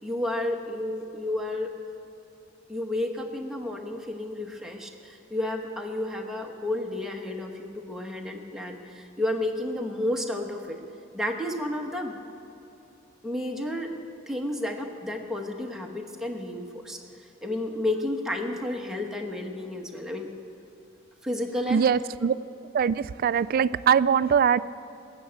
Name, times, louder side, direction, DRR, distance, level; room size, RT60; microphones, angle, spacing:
voice 1, 0.0-1.7 2.7-10.8 11.1-12.1 13.2-13.9 14.3-17.0 17.4-20.3 21.2-21.8, left 1 dB, ahead, 1 dB, 1.2 m, -31 dB
voice 2, 21.7-22.3 22.7-24.6, right 7 dB, 50° right, 16 dB, 0.3 m, -22 dB
18.0 x 6.9 x 8.7 m, 2.8 s
head